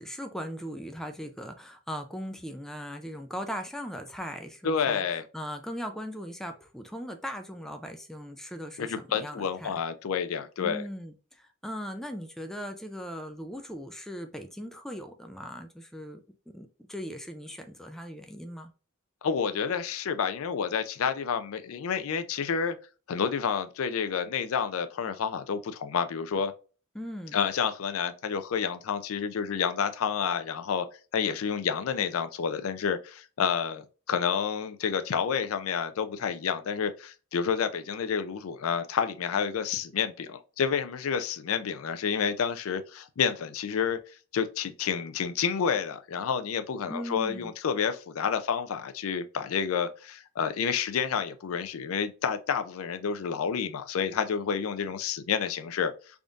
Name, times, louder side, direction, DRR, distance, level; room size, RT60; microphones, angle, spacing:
voice 1, 0.0-9.8 10.6-18.7 26.9-27.4 46.8-47.5, equal, ahead, 0.3 m, -39 dB
voice 2, 4.6-5.2 8.8-10.8 19.2-22.8 23.1-26.5 27.3-30.9 31.1-44.0 44.3-55.9, left 7 dB, 80° left, 0.4 m, -29 dB
3.5 x 2.6 x 3.5 m
head